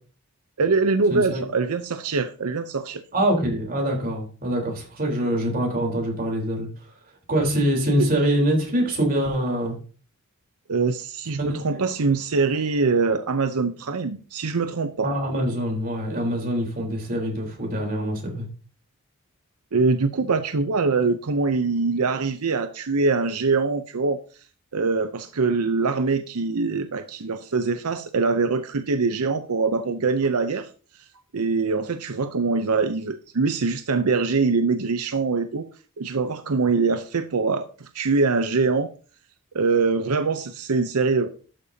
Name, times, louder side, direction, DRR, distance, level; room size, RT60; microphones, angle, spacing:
voice 1, 0.6-3.0 8.0-8.1 10.7-15.1 19.7-24.2 24.7-30.7 31.3-35.7 36.0-38.9 39.5-41.3, right 4 dB, 85° right, 0.7 m, -23 dB
voice 2, 1.1-1.4 3.1-6.7 7.3-9.8 11.4-11.6 15.0-18.5, right 1 dB, 40° right, 3.8 m, -24 dB
12.0 x 8.8 x 2.8 m
head